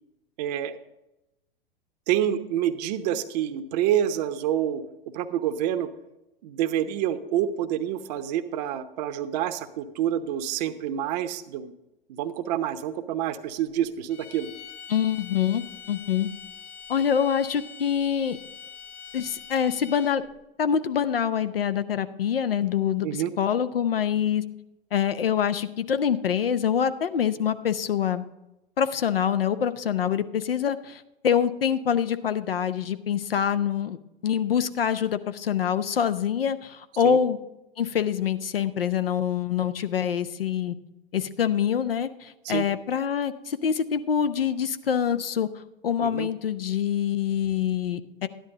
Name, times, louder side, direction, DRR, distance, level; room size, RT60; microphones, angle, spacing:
voice 1, 0.4-0.8 2.1-4.8 5.1-5.9 6.4-11.7 12.1-14.5 23.0-23.3 37.0-37.2 42.4-42.7 46.0-46.3, right 10 dB, 45° right, 11 dB, 0.8 m, -27 dB
sound 1, 14.1-20.3, left 8 dB, 40° left, 1.4 m, -44 dB
voice 2, 14.9-16.3 16.9-18.4 19.1-20.2 20.6-23.1 23.4-24.4 24.9-28.2 28.8-34.0 34.2-37.4 37.8-40.8 41.1-45.5 45.8-48.3, left 8 dB, 75° left, 11 dB, 0.7 m, -25 dB
12.5 x 10.5 x 3.8 m, 0.94 s
figure-of-eight pair, 95°, 29 cm